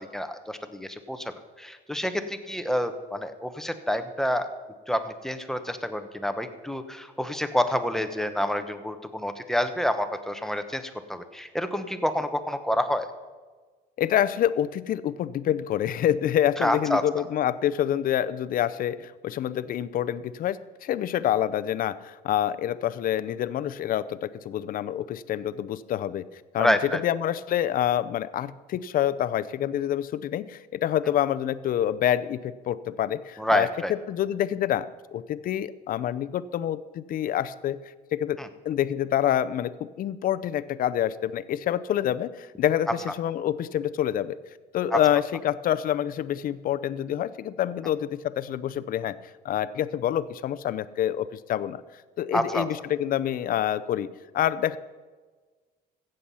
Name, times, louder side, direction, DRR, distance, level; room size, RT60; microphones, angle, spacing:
voice 1, 0.0-4.5 4.9-13.1 16.6-17.0 26.6-27.0 33.4-33.9 38.4-38.5 44.9-45.0 52.3-52.7, equal, ahead, 8 dB, 1.0 m, -28 dB
voice 2, 14.0-26.7 27.0-33.7 34.1-34.9 35.1-37.8 38.1-38.4 38.6-39.7 40.0-42.9 43.2-44.4 44.7-49.2 49.4-51.8 52.2-54.1 54.3-54.8, left 11 dB, 55° left, 15 dB, 0.6 m, -27 dB
15.5 x 7.8 x 5.6 m, 1.4 s
cardioid pair, 110°, 17 cm